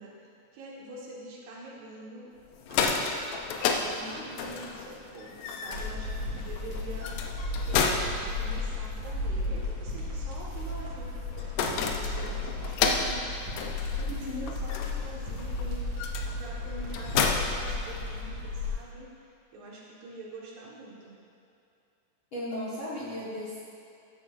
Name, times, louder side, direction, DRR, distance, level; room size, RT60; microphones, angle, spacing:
voice 1, 0.0-2.3 2.7-3.1 3.6-7.4 7.7-19.1 19.5-21.2, right 2 dB, 80° right, -4 dB, 3.7 m, -45 dB
photocopier door, 2.5-18.4, left 5 dB, 85° left, 1.8 m, -33 dB
sound 1, 5.7-18.7, left 2 dB, 40° right, 2.6 m, -34 dB
voice 2, 14.1-14.5 22.3-23.6, left 1 dB, 50° left, -9 dB, 1.6 m, -35 dB
15.0 x 10.5 x 2.6 m, 2.6 s
omnidirectional pair, 4.6 m